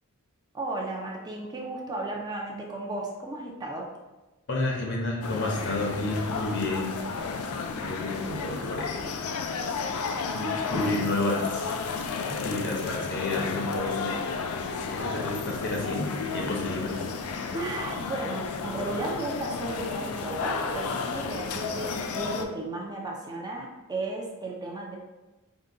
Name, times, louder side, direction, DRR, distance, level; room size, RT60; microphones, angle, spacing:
voice 1, 0.5-3.9 7.7-7.8 17.5-24.9, right 2 dB, 20° right, -1 dB, 0.4 m, -34 dB
voice 2, 4.5-7.0 7.8-9.1 10.2-11.7 12.3-14.2 14.9-17.0, left 2 dB, 55° left, -1 dB, 0.8 m, -30 dB
sound 1, 5.2-22.4, left 5 dB, 85° left, 0.4 m, -32 dB
3.7 x 2.2 x 3.7 m, 1.1 s
head